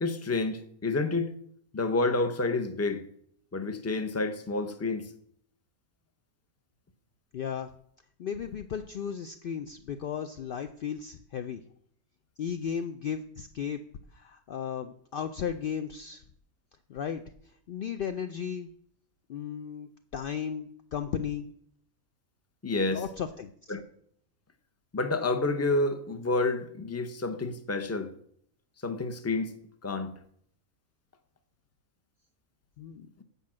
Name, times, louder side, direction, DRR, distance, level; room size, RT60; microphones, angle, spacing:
voice 1, 0.0-1.3 1.7-3.0 3.5-5.1 22.6-23.0 23.7-23.8 24.9-28.1 28.8-29.6 29.8-30.1, left 3 dB, 15° left, 0.5 m, -29 dB
voice 2, 7.3-7.7 8.2-11.6 12.4-13.8 14.1-16.2 16.9-17.2 17.7-18.7 19.3-21.5 22.9-23.7 32.8-33.1, left 8 dB, 75° left, 0.5 m, -35 dB
8.2 x 5.2 x 7.4 m
omnidirectional pair, 1.5 m